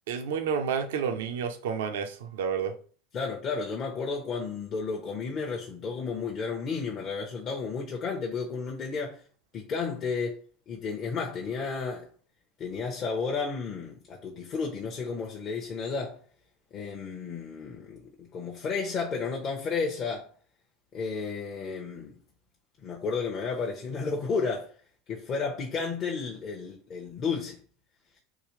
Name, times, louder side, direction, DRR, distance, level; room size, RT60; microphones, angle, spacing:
voice 1, 0.1-2.7, right 6 dB, 80° right, 0.6 m, -30 dB
voice 2, 3.1-9.2 9.5-10.4 10.7-12.1 12.6-16.2 16.7-20.3 20.9-22.1 22.8-24.7 25.1-27.6, left 5 dB, 40° left, 0.8 m, -32 dB
3.8 x 2.7 x 3.1 m
hypercardioid pair, 100°, 0 cm